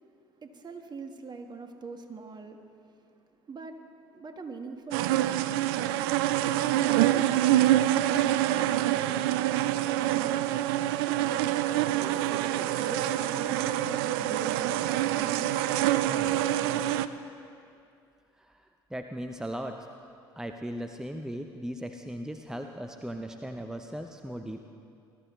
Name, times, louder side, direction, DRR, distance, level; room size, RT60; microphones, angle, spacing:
voice 1, 0.4-2.6 2.9-3.8 4.1-11.4 12.0-16.6, right 4 dB, 35° right, 6 dB, 1.4 m, -43 dB
sound 1, 4.9-17.1, right 13 dB, 75° right, 0.4 m, -26 dB
voice 2, 16.1-16.4 16.7-16.9 18.4-19.9 20.4-24.7, equal, 5° right, 6 dB, 0.7 m, -38 dB
20.0 x 13.0 x 3.1 m, 2.5 s
hypercardioid pair, 60°, 13 cm